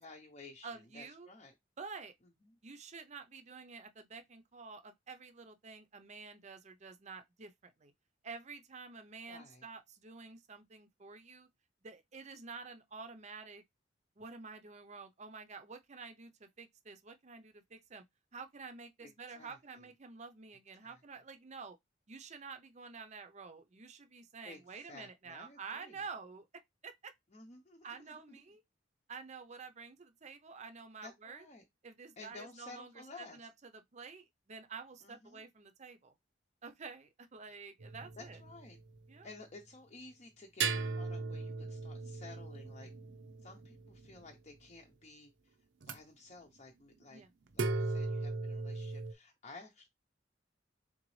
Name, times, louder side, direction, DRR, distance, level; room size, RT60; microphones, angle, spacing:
voice 1, 0.0-1.5 2.4-2.6 9.3-9.7 19.0-19.1 19.3-19.8 20.8-21.0 24.4-26.0 27.3-28.4 31.0-31.6 32.2-33.4 35.0-35.4 38.2-38.8 39.2-42.9 43.4-45.5 45.8-47.2 47.5-49.9, left 3 dB, 35° left, 0.7 m, -54 dB
voice 2, 0.6-1.3 1.8-2.1 2.6-7.9 8.2-11.5 11.8-13.6 14.2-18.0 18.3-21.8 22.1-26.5 26.8-27.1 27.8-28.6 29.1-31.5 31.8-36.1 36.6-38.4 39.1-39.3 47.1-47.3, right 5 dB, 40° right, 0.6 m, -49 dB
sound 1, 37.8-39.0 40.6-44.3 45.8-46.0 47.5-49.1, right 3 dB, 80° right, 0.6 m, -38 dB
3.9 x 3.9 x 3.2 m
head